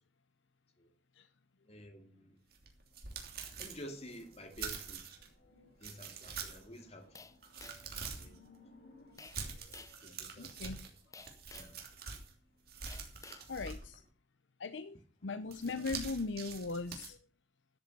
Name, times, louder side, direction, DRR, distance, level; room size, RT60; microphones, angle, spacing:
voice 1, 1.7-2.4 3.6-5.1 5.8-7.1 8.2-8.4 9.7-9.8 10.0-10.7 11.5-11.7, equal, 35° left, 2.4 m, -50 dB
sound 1, 2.5-5.3 5.8-6.8 7.2-8.4 9.2-12.3 12.7-14.1 15.5-17.1, right 5 dB, 55° right, 3.0 m, -45 dB
sound 2, 3.7-9.1, left 3 dB, 55° left, 4.2 m, -64 dB
sound 3, 7.2-8.0 9.2-9.4 9.7-10.0 11.1-11.8 12.9-13.5, left 4 dB, 20° left, 0.7 m, -53 dB
voice 2, 9.1-10.9 13.5-14.0 14.6-17.2, left 3 dB, 80° left, 0.8 m, -40 dB
13.0 x 7.8 x 6.9 m
head